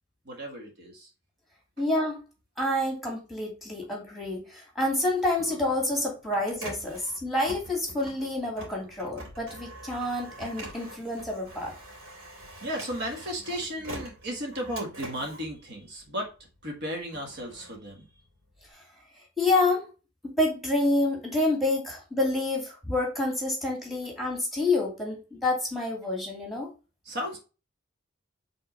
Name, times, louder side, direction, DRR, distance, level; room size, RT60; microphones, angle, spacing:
voice 1, 0.2-1.1 12.6-16.3 16.6-18.1 27.0-27.4, equal, 55° right, 1 dB, 1.6 m, -35 dB
voice 2, 1.8-2.2 2.6-11.7 18.7-18.8 19.4-19.8 20.2-26.7, left 2 dB, ahead, -1 dB, 2.4 m, -28 dB
Printer, 5.0-16.4 16.9-18.7, right 1 dB, 80° right, 2.6 m, -44 dB
5.4 x 3.7 x 5.5 m, 0.32 s
head